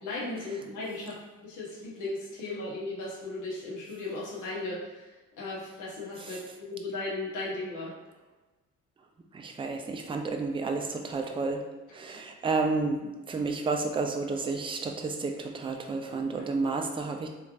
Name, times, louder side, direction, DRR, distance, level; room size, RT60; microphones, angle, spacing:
voice 1, 0.0-7.9, left 2 dB, 80° left, -6 dB, 1.2 m, -36 dB
voice 2, 9.3-11.6 11.9-17.3, right 3 dB, 15° right, 3 dB, 0.4 m, -31 dB
3.2 x 3.2 x 2.5 m, 1.2 s
cardioid pair, 90°, 30 cm